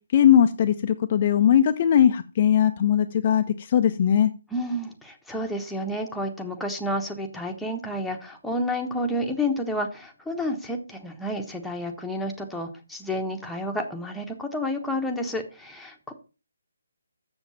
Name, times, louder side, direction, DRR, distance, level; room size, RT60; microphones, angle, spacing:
voice 1, 0.1-4.3, left 9 dB, 35° left, 7 dB, 0.6 m, -19 dB
voice 2, 4.5-16.1, left 1 dB, ahead, 1 dB, 1.1 m, -30 dB
7.1 x 7.1 x 5.6 m, 0.33 s
figure-of-eight pair, 145°, 0 cm